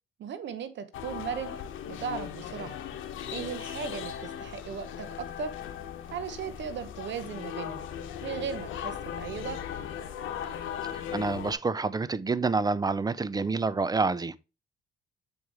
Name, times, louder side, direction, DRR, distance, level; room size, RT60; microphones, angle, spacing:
voice 1, 0.2-1.5 1.9-2.8 3.3-5.5 6.1-7.8 8.2-9.6, right 7 dB, 65° right, 1.0 m, -37 dB
sound 1, 0.9-11.5, left 9 dB, 80° left, 1.0 m, -38 dB
voice 2, 11.1-14.4, right 4 dB, 20° right, 0.4 m, -28 dB
7.0 x 4.7 x 3.5 m
cardioid pair, 90°, 20 cm